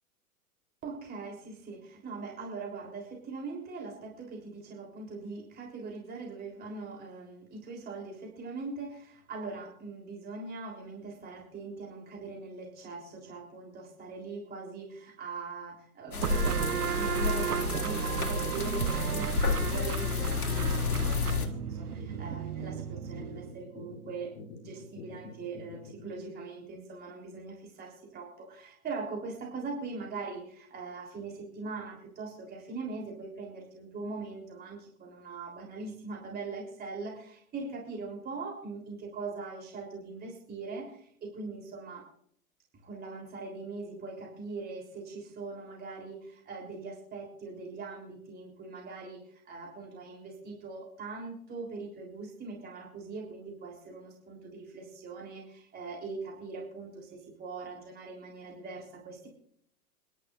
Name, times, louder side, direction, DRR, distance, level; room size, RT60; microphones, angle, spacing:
voice 1, 0.8-42.0 42.8-59.3, right 4 dB, 20° right, -1 dB, 3.6 m, -41 dB
sound 1, 16.1-21.5, left 5 dB, 65° left, 2.2 m, -31 dB
sound 2, 16.1-26.1, left 5 dB, 15° left, 3.7 m, -46 dB
sound 3, 16.2-23.6, right 8 dB, 75° right, 0.7 m, -33 dB
29.0 x 11.0 x 2.6 m, 0.65 s
figure-of-eight pair, 100°, 46 cm